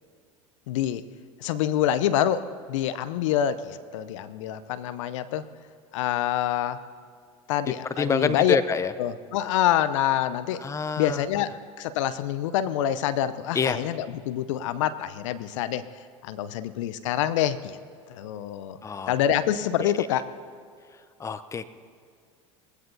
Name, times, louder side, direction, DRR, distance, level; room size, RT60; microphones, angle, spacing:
voice 1, 0.7-1.0 1.4-5.4 5.9-6.8 7.5-8.6 9.0-10.6 11.0-11.5 11.8-15.8 16.2-17.8 18.1-18.8 19.1-20.3, left 11 dB, 65° left, 13 dB, 0.6 m, -26 dB
voice 2, 8.0-8.9 10.6-11.2 13.5-13.8 18.8-19.1 19.8-19.9 21.2-21.7, left 5 dB, 15° left, 12 dB, 0.6 m, -26 dB
22.0 x 16.0 x 2.7 m, 2.2 s
figure-of-eight pair, 80°, 18 cm